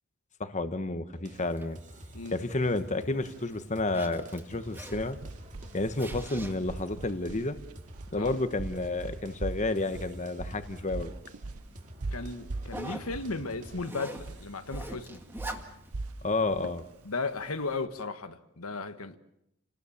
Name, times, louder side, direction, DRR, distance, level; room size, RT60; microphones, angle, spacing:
voice 1, 0.4-1.8 2.3-5.2 5.7-7.6 8.1-11.1 16.2-16.8, left 2 dB, 35° left, 1.1 m, -30 dB
sound 1, 1.1-16.9, equal, 35° right, 2.4 m, -50 dB
Zipper (clothing), 1.3-17.8, right 1 dB, 10° right, 2.0 m, -48 dB
sound 2, 4.6-17.8, right 2 dB, 85° right, 0.9 m, -41 dB
voice 2, 12.1-15.2 17.0-19.2, left 3 dB, 85° left, 1.6 m, -35 dB
29.5 x 19.0 x 7.2 m
head